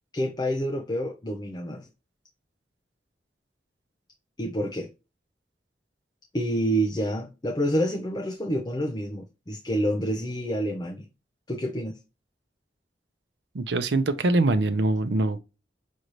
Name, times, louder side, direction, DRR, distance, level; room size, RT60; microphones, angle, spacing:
voice 1, 0.1-1.9 4.4-4.9 6.3-11.1 11.5-12.0, equal, 25° left, 0.5 m, -28 dB
voice 2, 13.5-15.4, right 2 dB, 80° right, 0.6 m, -23 dB
6.2 x 2.7 x 3.0 m
head